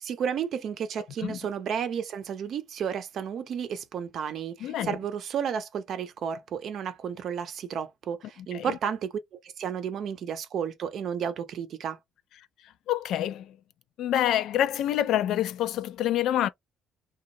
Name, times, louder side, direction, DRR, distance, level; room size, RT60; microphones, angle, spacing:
voice 1, 0.0-12.0, right 8 dB, 60° right, 0.6 m, -32 dB
voice 2, 4.6-5.0 8.5-8.8 12.9-13.6 14.0-16.5, left 11 dB, 70° left, 0.3 m, -27 dB
2.9 x 2.3 x 2.6 m
cardioid pair, 105°, 0 cm